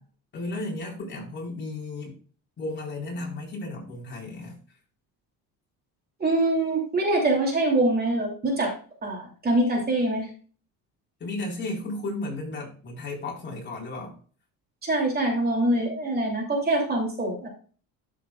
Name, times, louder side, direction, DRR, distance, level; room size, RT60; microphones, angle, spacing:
voice 1, 0.3-2.1 2.6-4.6 11.2-14.1, left 2 dB, 30° left, 4.3 m, -34 dB
voice 2, 6.2-8.7 9.0-10.3 14.8-17.5, right 2 dB, 25° right, 2.9 m, -24 dB
12.5 x 7.1 x 2.4 m
cardioid pair, 140°, 35 cm